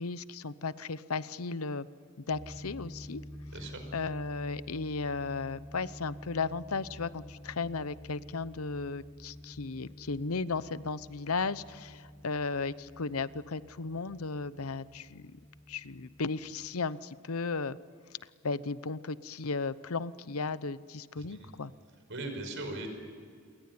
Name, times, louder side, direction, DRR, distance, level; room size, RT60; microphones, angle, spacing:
voice 1, 0.0-1.9 2.3-3.2 3.9-15.3 15.7-17.8 18.4-21.7, left 4 dB, 90° left, 16 dB, 0.9 m, -35 dB
sound 1, 2.3-16.7, left 1 dB, 20° right, 5.7 m, -49 dB
voice 2, 3.5-3.8 21.2-21.5 22.1-22.9, right 2 dB, 60° right, 6 dB, 5.6 m, -39 dB
28.5 x 21.5 x 9.6 m, 2.1 s
head